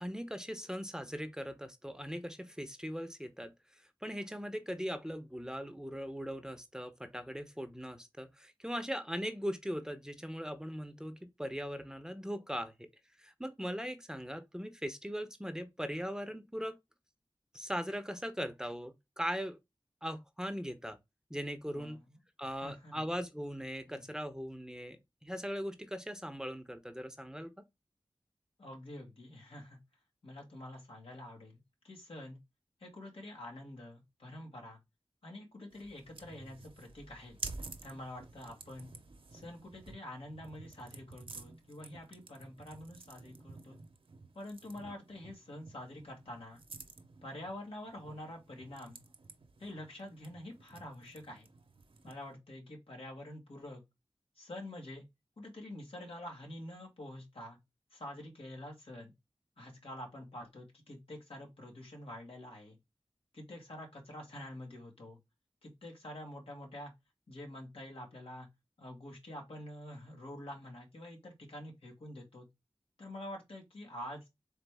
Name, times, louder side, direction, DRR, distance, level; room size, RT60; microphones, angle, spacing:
voice 1, 0.0-3.5 4.0-12.9 13.2-16.8 17.5-19.6 20.0-21.0 21.3-22.0 22.4-27.6, equal, 5° right, 0.6 m, -40 dB
voice 2, 22.4-23.0 23.9-24.0 28.6-29.8 30.2-32.4 32.8-34.8 35.2-37.4 37.8-38.9 39.3-43.8 44.3-46.6 47.2-49.0 49.6-51.5 52.0-53.8 54.4-55.1 55.4-57.6 57.9-59.1 59.6-62.8 63.3-65.2 65.6-66.9 67.3-68.5 68.8-72.5 73.0-74.2, left 1 dB, 85° left, 1.6 m, -47 dB
sound 1, 35.7-52.3, right 3 dB, 70° right, 0.6 m, -51 dB
4.0 x 3.3 x 3.4 m
wide cardioid pair, 55°, 9 cm